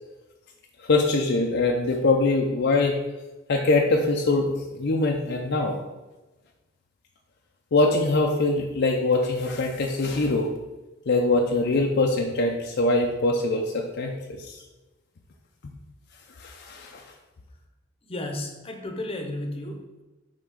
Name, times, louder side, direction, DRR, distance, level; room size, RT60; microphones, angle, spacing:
voice 1, 0.9-3.0 3.5-5.8 7.7-10.5 11.1-14.1 14.4-14.6 16.4-17.0, left 2 dB, 55° left, 1 dB, 0.5 m, -23 dB
voice 2, 18.1-20.0, left 1 dB, 30° left, 3 dB, 0.8 m, -33 dB
5.7 x 3.5 x 4.9 m, 1.1 s
head